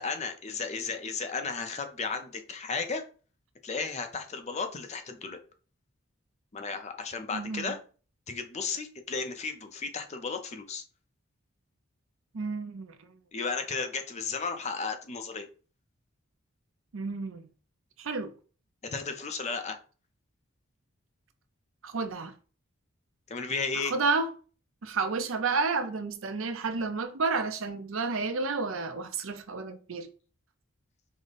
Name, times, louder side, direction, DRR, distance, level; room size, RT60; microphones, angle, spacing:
voice 1, 0.0-3.0 3.6-5.4 6.5-7.8 8.3-10.8 13.3-15.4 18.8-19.8 23.3-23.9, left 4 dB, 30° left, 0.5 m, -34 dB
voice 2, 7.3-7.8 12.3-13.1 16.9-17.5 18.0-18.3 21.8-22.3 23.7-24.3 24.8-30.1, right 4 dB, 70° right, 0.6 m, -31 dB
5.0 x 2.1 x 4.0 m
head